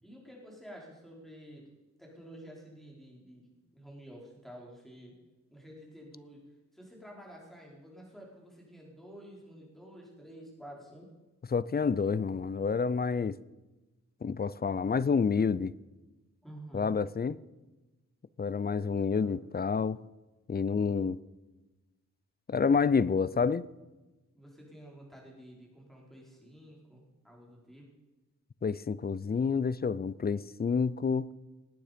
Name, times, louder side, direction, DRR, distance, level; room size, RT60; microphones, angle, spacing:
voice 1, 0.0-1.7 2.0-5.2 5.5-11.1 16.4-17.0 19.1-19.5 24.3-27.9, equal, ahead, 4.5 m, -50 dB
voice 2, 11.5-13.4 14.2-15.7 16.7-17.3 18.4-20.0 20.5-21.2 22.5-23.6 28.6-31.3, left 5 dB, 35° left, 0.4 m, -28 dB
19.0 x 9.2 x 5.1 m
wide cardioid pair, 80°, 29 cm